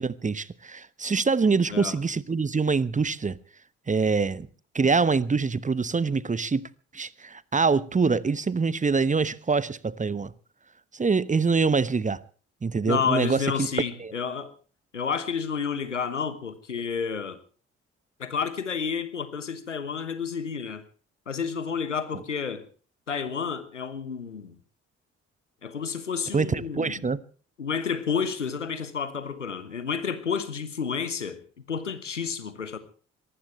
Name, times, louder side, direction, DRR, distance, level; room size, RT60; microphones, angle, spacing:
voice 1, 0.0-3.4 3.9-4.5 4.7-6.7 6.9-10.3 10.9-12.2 12.6-13.4 14.0-14.1 26.3-27.2, right 4 dB, 20° right, 1.0 m, -25 dB
voice 2, 12.8-14.5 14.9-17.4 18.2-20.9 21.3-22.7 23.1-24.6 25.6-27.1 27.6-31.4 31.7-32.8, left 6 dB, 85° left, 1.1 m, -30 dB
23.0 x 19.0 x 3.2 m
figure-of-eight pair, 40°, 35 cm